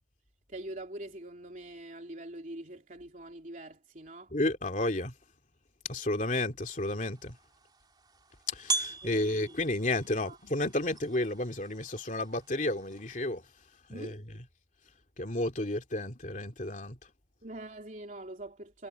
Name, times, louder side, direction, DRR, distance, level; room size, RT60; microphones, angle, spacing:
voice 1, 0.5-4.3 9.0-9.5 10.2-10.4 13.9-14.2 17.4-18.9, right 1 dB, 45° right, 3.4 m, -44 dB
voice 2, 4.3-5.1 5.9-7.4 8.5-13.4 13.9-14.4 15.2-17.0, left 1 dB, 45° left, 2.9 m, -32 dB
sound 1, 6.6-13.3, right 3 dB, 25° right, 3.5 m, -40 dB
head